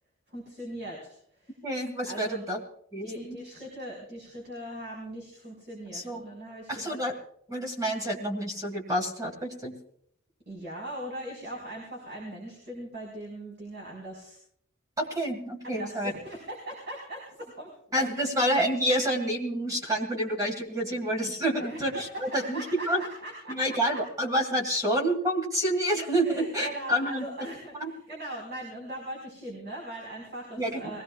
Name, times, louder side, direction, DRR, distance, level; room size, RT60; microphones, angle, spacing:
voice 1, 0.3-1.6 2.0-2.4 3.0-7.0 10.4-14.4 15.6-18.0 21.6-21.8 22.1-24.0 26.2-31.0, right 1 dB, 55° right, -2 dB, 5.1 m, -40 dB
voice 2, 1.6-2.6 2.9-3.4 5.9-6.3 6.7-7.1 7.5-9.7 15.0-16.1 17.9-23.0 23.5-27.2 27.8-27.9 30.6-30.9, right 1 dB, 15° right, 2 dB, 2.0 m, -28 dB
23.0 x 17.5 x 2.5 m, 0.64 s
head